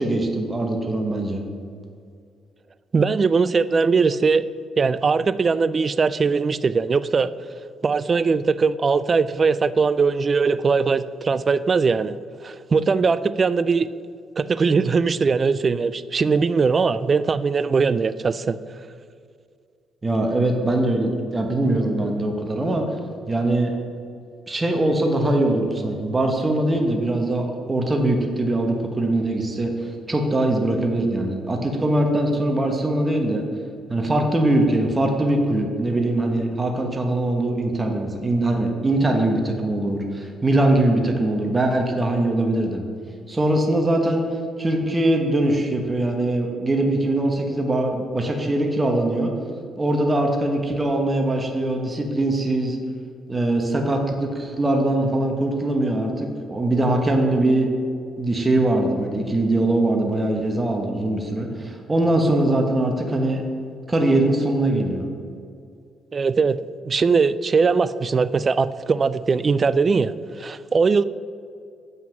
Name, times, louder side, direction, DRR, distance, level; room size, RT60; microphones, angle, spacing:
voice 1, 0.0-1.4 20.0-22.8 23.3-23.7 24.5-33.4 33.9-42.8 43.3-44.2 44.6-49.3 49.8-52.8 53.3-57.7 58.2-63.4 63.9-65.1, right 1 dB, 20° right, 2 dB, 1.2 m, -22 dB
voice 2, 2.9-4.4 4.8-7.3 7.8-12.2 12.4-13.9 14.4-18.6 66.1-66.6 66.8-71.0, right 5 dB, 40° right, 16 dB, 0.3 m, -20 dB
7.6 x 5.6 x 6.0 m, 2.3 s
cardioid pair, 90°, 0 cm